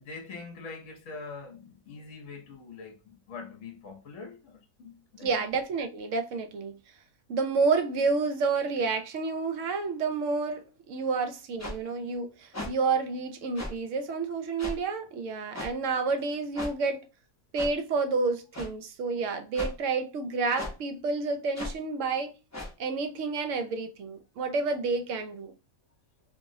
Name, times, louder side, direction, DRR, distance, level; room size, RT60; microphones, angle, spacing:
voice 1, 0.0-5.5 11.0-11.1, left 4 dB, 65° left, 1.0 m, -44 dB
voice 2, 5.2-6.8 7.3-17.1 17.5-22.4 22.8-25.5, right 4 dB, 70° right, 0.9 m, -29 dB
sound 1, 11.6-11.8 12.5-12.7 13.6-13.7 14.6-14.8 15.5-15.7 16.5-16.7 17.5-17.7 18.5-18.7 19.5-19.7 20.5-20.7 21.5-21.7 22.5-22.7, left 1 dB, 15° left, 0.5 m, -35 dB
2.9 x 2.6 x 2.6 m
omnidirectional pair, 1.5 m